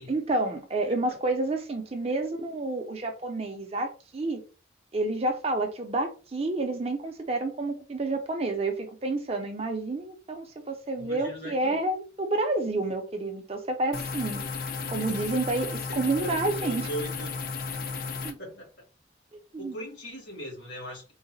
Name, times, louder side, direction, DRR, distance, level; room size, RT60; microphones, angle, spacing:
voice 1, 0.1-4.4 4.9-14.4 14.9-16.9 18.2-18.4 19.5-19.8, right 2 dB, 35° right, 0.5 m, -29 dB
voice 2, 0.9-1.2 11.0-11.8 15.0-15.2 15.9-17.3 18.4-18.8 19.6-21.1, right 1 dB, 75° left, 1.6 m, -40 dB
sound 1, 13.9-18.3, left 4 dB, 50° left, 0.4 m, -34 dB
3.8 x 2.1 x 2.6 m
head